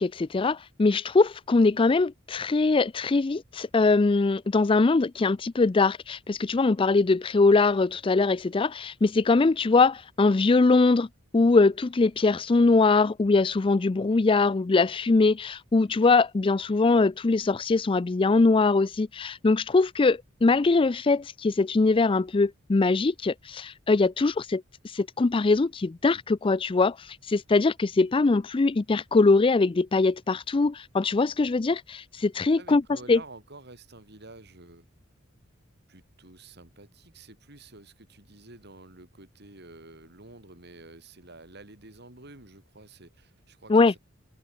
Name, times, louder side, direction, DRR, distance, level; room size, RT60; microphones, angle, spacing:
voice 1, 0.0-11.1 11.3-24.6 24.9-32.8 33.1-33.2 43.7-43.9, left 3 dB, 25° left, 0.4 m, -22 dB
voice 2, 32.5-34.8 35.9-44.0, right 2 dB, 55° right, 4.7 m, -49 dB
open air
head